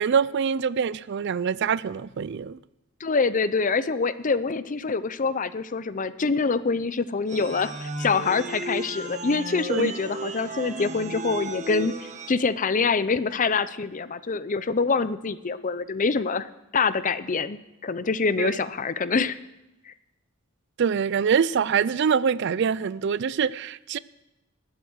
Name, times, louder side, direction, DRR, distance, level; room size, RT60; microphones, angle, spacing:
voice 1, 0.0-2.6 9.7-9.9 18.4-18.6 20.8-24.0, right 6 dB, 55° right, 0.4 m, -24 dB
voice 2, 3.0-11.9 12.3-19.4 19.9-20.0, left 4 dB, 40° left, 0.6 m, -25 dB
sound 1, 7.3-12.3, right 2 dB, 35° right, 1.2 m, -34 dB
20.5 x 8.1 x 6.4 m
head